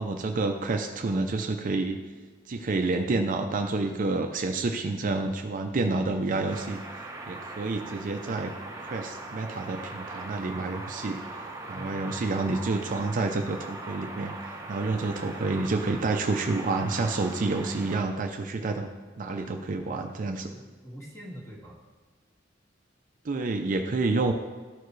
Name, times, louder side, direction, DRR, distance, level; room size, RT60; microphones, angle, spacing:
voice 1, 0.0-2.0 2.5-6.8 7.3-8.5 8.8-11.2 11.7-14.3 14.7-18.9 19.2-20.4 23.2-24.3, right 3 dB, 45° right, 5 dB, 0.5 m, -28 dB
sound 1, 6.5-18.0, right 2 dB, 15° right, 0.8 m, -41 dB
voice 2, 11.7-12.3 20.2-21.8, equal, 15° left, -4 dB, 1.9 m, -44 dB
13.0 x 4.6 x 3.2 m, 1.4 s
head